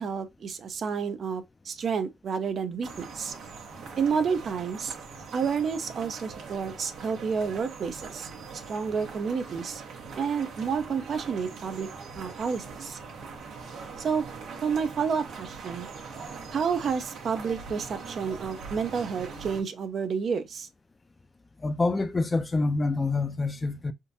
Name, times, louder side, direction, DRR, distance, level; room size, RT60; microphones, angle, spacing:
voice 1, 0.0-3.3 4.0-5.0 5.3-8.3 8.7-9.8 10.2-11.9 12.2-13.0 14.0-14.2 14.6-15.9 16.5-20.7, right 6 dB, 55° right, 0.6 m, -30 dB
sound 1, 2.8-19.6, right 5 dB, 80° right, 1.1 m, -42 dB
voice 2, 21.6-23.9, left 3 dB, 25° left, 0.5 m, -26 dB
3.6 x 2.6 x 2.6 m
cardioid pair, 90°, 0 cm